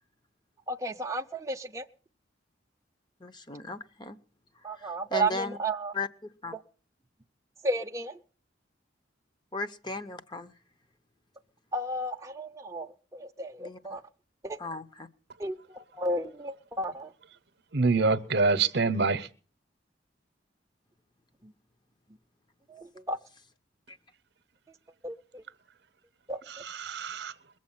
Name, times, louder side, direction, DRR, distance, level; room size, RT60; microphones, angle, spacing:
voice 1, 0.7-1.8 4.6-5.9 7.6-8.1 11.7-14.0 14.4-14.6 15.4-15.6 16.0-17.1 22.7-23.2 25.0-25.4 26.3-26.4, right 2 dB, 15° right, 0.6 m, -33 dB
voice 2, 3.2-4.2 4.8-5.6 5.9-6.5 9.5-10.5 13.6-13.8 14.6-15.1 23.9-24.0, left 3 dB, 25° left, 0.8 m, -37 dB
voice 3, 17.7-19.3 26.5-27.3, right 4 dB, 60° right, 0.9 m, -26 dB
22.0 x 7.6 x 7.3 m
head